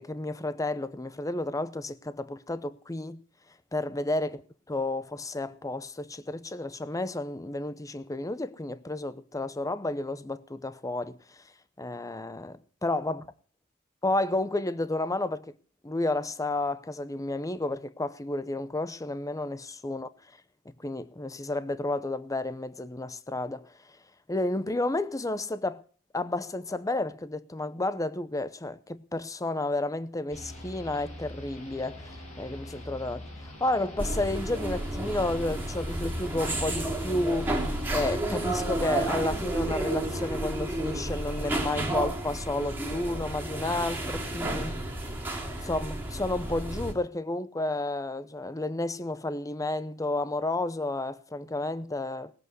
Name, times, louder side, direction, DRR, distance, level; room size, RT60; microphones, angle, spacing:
voice 1, 0.0-3.2 3.7-4.4 4.7-11.4 11.8-13.2 14.0-15.5 15.8-20.1 20.7-23.7 24.3-25.8 26.1-44.8 45.6-52.3, left 2 dB, 15° left, 0.7 m, -31 dB
sound 1, 30.3-38.2, left 1 dB, 35° left, 7.4 m, -43 dB
sound 2, 34.0-46.9, right 1 dB, 10° right, 3.0 m, -31 dB
19.0 x 8.3 x 7.9 m
head